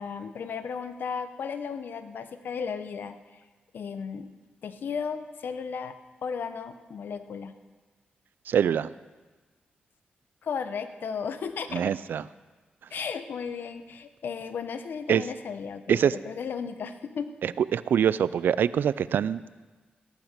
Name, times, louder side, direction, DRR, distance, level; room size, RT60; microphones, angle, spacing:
voice 1, 0.0-3.4 3.7-4.3 4.6-5.9 6.2-7.5 10.4-11.8 12.9-17.3, left 6 dB, 75° left, 10 dB, 0.9 m, -35 dB
voice 2, 8.5-8.9 11.7-12.2 15.1-15.2 15.9-16.2 17.4-19.4, right 8 dB, 80° right, 17 dB, 0.4 m, -24 dB
17.0 x 9.1 x 6.6 m, 1.3 s
cardioid pair, 70°, 3 cm